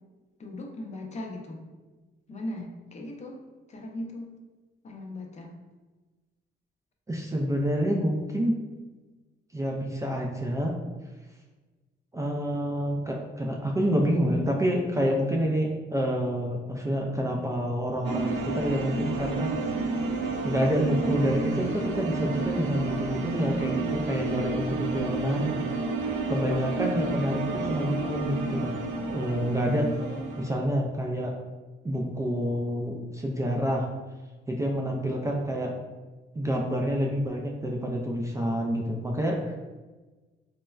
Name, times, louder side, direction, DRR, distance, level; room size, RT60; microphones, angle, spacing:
voice 1, 0.4-1.6 2.3-3.4 3.7-4.3 4.8-5.5 21.0-21.4 29.7-30.5, left 1 dB, 35° left, 1 dB, 0.5 m, -38 dB
voice 2, 7.1-8.6 9.5-10.7 12.1-19.5 20.4-25.5 26.3-28.7 29.1-29.9 30.4-31.4 31.8-33.9 34.5-35.8 36.3-39.6, equal, 15° right, -1 dB, 0.3 m, -28 dB
sound 1, 18.0-30.6, right 3 dB, 70° right, 0.5 m, -31 dB
4.1 x 2.1 x 2.3 m, 1.2 s
cardioid pair, 90°, 20 cm